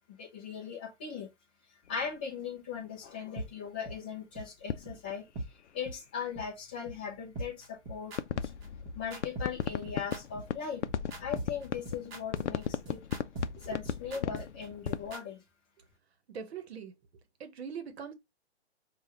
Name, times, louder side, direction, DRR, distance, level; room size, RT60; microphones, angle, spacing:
voice 1, 0.1-1.3 1.9-5.3 5.7-8.1 8.4-8.5 8.9-10.8 11.2-13.0 13.6-15.4, left 6 dB, 10° left, 0.3 m, -39 dB
sound 1, 1.8-2.1 3.1-3.2 4.0-4.1 4.6-6.4 6.7-15.2, left 9 dB, 85° left, 0.5 m, -37 dB
sound 2, 3.4-3.5 3.8-4.0 4.3-4.4 4.9-5.0 5.3-5.5 5.8-6.0 6.3-6.4 6.9-7.0 7.3-15.2, right 2 dB, 25° right, 1.1 m, -41 dB
voice 2, 16.3-17.0 17.4-18.1, right 7 dB, 65° right, 0.9 m, -42 dB
4.7 x 2.3 x 2.9 m
hypercardioid pair, 145°, 34 cm